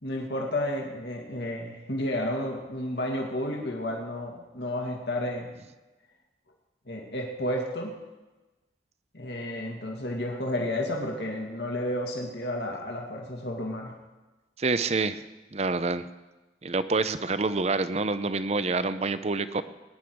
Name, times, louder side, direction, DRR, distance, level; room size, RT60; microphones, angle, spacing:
voice 1, 0.0-5.5 6.9-7.9 9.1-13.9, left 1 dB, 70° left, 0 dB, 2.2 m, -31 dB
voice 2, 14.6-15.2 15.5-16.1 16.6-19.6, right 3 dB, 35° right, 13 dB, 0.6 m, -27 dB
19.5 x 10.5 x 4.7 m, 1.1 s
head